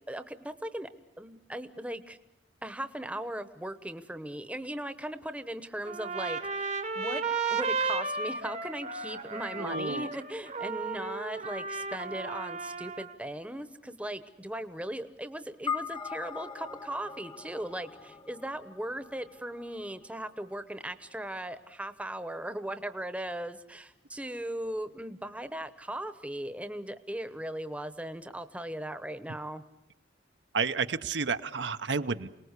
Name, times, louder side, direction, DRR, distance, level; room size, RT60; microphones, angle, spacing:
voice 1, 0.1-0.9 1.2-2.2 2.6-29.6, right 1 dB, 5° right, 11 dB, 0.9 m, -38 dB
Trumpet, 5.8-13.2, right 4 dB, 40° right, 1.0 m, -34 dB
voice 2, 9.6-10.1 30.5-32.3, right 5 dB, 75° right, 9 dB, 0.8 m, -31 dB
sound 1, 15.7-20.2, left 6 dB, 25° left, 1.0 m, -40 dB
28.0 x 19.5 x 8.2 m, 0.88 s
head